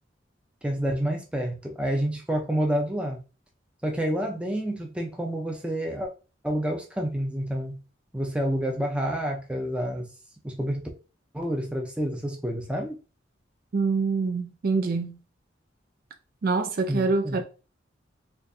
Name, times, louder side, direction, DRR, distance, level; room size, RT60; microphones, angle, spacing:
voice 1, 0.6-3.2 3.8-6.1 6.4-7.8 8.1-10.1 10.4-10.9 11.3-13.0 16.9-17.4, equal, 5° right, 0.6 m, -28 dB
voice 2, 13.7-15.2 16.4-17.4, right 4 dB, 50° right, 0.4 m, -25 dB
4.4 x 2.6 x 2.7 m
head